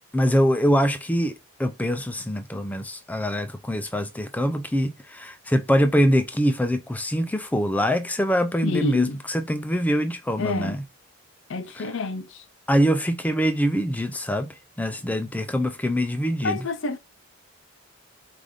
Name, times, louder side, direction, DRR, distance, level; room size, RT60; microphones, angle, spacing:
voice 1, 0.1-1.3 1.6-10.8 11.8-11.9 12.7-16.7, equal, 5° left, 0.4 m, -24 dB
voice 2, 8.6-9.2 10.4-10.8 11.5-12.4 16.4-17.0, left 3 dB, 55° left, 0.5 m, -28 dB
4.9 x 2.5 x 3.7 m
head